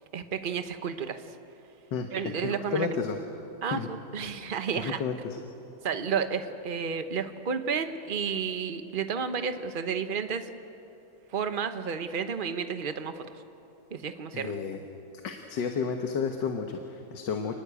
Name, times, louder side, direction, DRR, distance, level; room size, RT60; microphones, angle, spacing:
voice 1, 0.1-1.4 2.1-2.9 3.6-5.0 5.8-10.5 11.3-13.4 13.9-14.6, right 6 dB, 35° right, 9 dB, 0.9 m, -31 dB
voice 2, 2.4-3.2 3.7-3.9 4.8-5.4 14.3-14.8 15.2-17.6, left 6 dB, 65° left, 4 dB, 1.8 m, -31 dB
28.0 x 20.0 x 8.3 m, 2.8 s
omnidirectional pair, 2.2 m